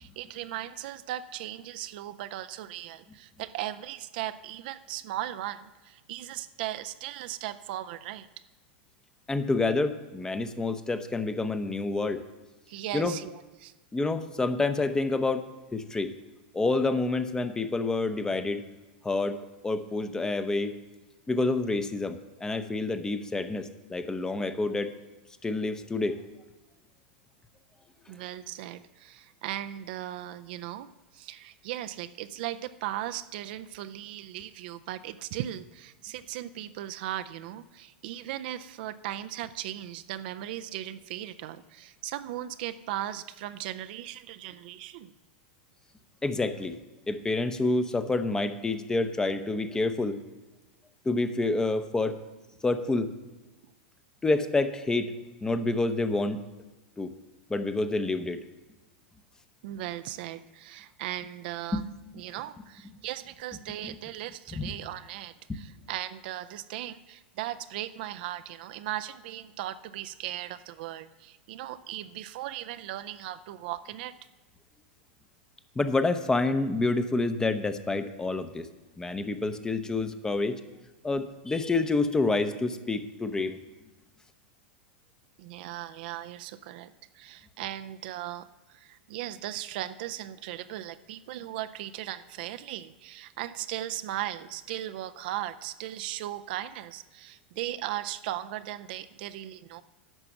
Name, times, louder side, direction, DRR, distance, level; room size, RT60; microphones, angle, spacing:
voice 1, 0.0-8.3 12.7-13.7 28.1-45.1 59.6-61.8 62.2-74.1 85.4-99.8, right 13 dB, 60° right, 11 dB, 0.5 m, -37 dB
voice 2, 9.3-12.2 12.9-13.1 13.9-16.1 16.5-18.6 19.0-19.4 19.6-20.7 21.3-24.9 25.4-26.2 46.2-46.8 47.1-50.2 51.0-52.2 52.6-53.1 54.2-55.1 55.4-56.4 57.0-57.1 57.5-58.4 61.7-61.8 63.8-64.0 64.5-64.7 65.5-65.6 75.8-78.7 79.0-80.6 81.0-83.6, left 3 dB, 10° left, 10 dB, 0.7 m, -28 dB
11.0 x 6.0 x 6.9 m, 1.1 s
hypercardioid pair, 105°, 6 cm